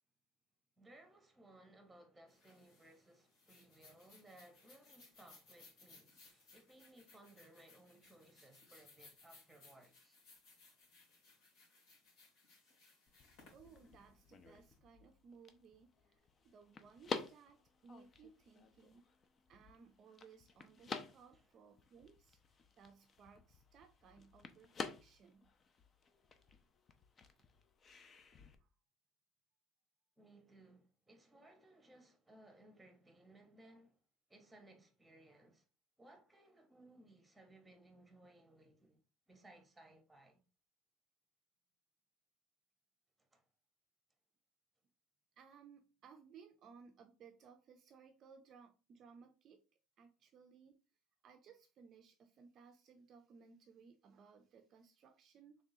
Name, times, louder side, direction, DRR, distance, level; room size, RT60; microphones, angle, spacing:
voice 1, 0.8-10.2 12.7-12.8 21.3-21.5 30.2-34.0 34.3-35.6 36.0-40.4 43.2-43.4, right 1 dB, 5° right, 1.0 m, -63 dB
sound 1, 2.3-14.7, left 3 dB, 65° left, 2.2 m, -64 dB
sound 2, 13.1-28.6, left 4 dB, 30° left, 0.5 m, -51 dB
voice 2, 13.5-19.0 19.5-22.4 22.8-25.5 28.6-28.7 45.4-49.6 50.0-50.8 51.2-55.6, right 6 dB, 45° right, 0.4 m, -61 dB
3.6 x 3.4 x 2.7 m
cardioid pair, 125°, 0 cm